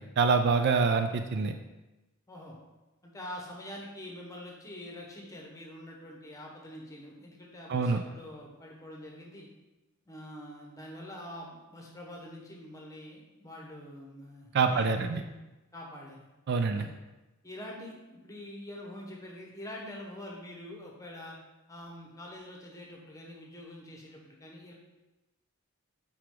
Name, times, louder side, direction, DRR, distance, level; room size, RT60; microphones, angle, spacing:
voice 1, 0.0-1.5 7.7-8.0 14.5-15.2 16.5-16.9, right 4 dB, 50° right, 7 dB, 0.4 m, -26 dB
voice 2, 2.3-2.6 3.0-9.5 10.1-15.1 15.7-16.3 16.7-16.9 17.4-21.4 21.7-24.7, left 1 dB, 15° left, -1 dB, 1.1 m, -45 dB
5.8 x 4.9 x 3.8 m, 1.0 s
head